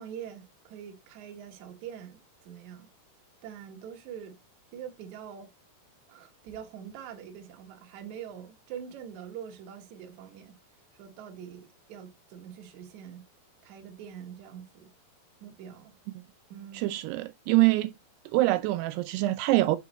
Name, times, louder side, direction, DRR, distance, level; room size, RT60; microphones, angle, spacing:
voice 1, 0.0-2.9 3.4-4.4 4.7-5.5 6.1-10.6 10.9-13.3 13.6-14.9 15.4-16.0 16.5-17.0, right 8 dB, 65° right, 1.9 m, -44 dB
voice 2, 16.7-17.9 18.3-19.8, right 18 dB, 85° right, 2.5 m, -24 dB
6.2 x 4.7 x 4.0 m
omnidirectional pair, 4.8 m